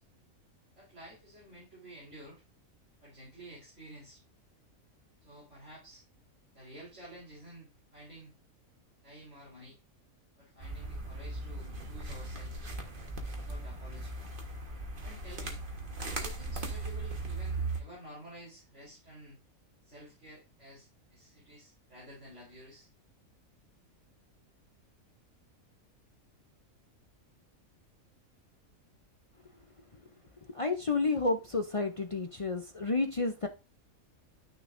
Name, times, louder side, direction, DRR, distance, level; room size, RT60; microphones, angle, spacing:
voice 1, 0.8-2.4 3.0-4.2 5.2-6.0 6.5-8.3 9.0-9.8 10.4-12.7 13.4-14.2 15.0-15.6 16.1-19.4 19.8-22.9, equal, 55° right, -7 dB, 4.1 m, -51 dB
sound 1, 10.6-17.8, right 2 dB, 40° right, 1.5 m, -38 dB
voice 2, 30.5-33.5, left 3 dB, 40° left, 5 dB, 0.5 m, -30 dB
12.0 x 6.3 x 2.6 m, 0.29 s
omnidirectional pair, 1.5 m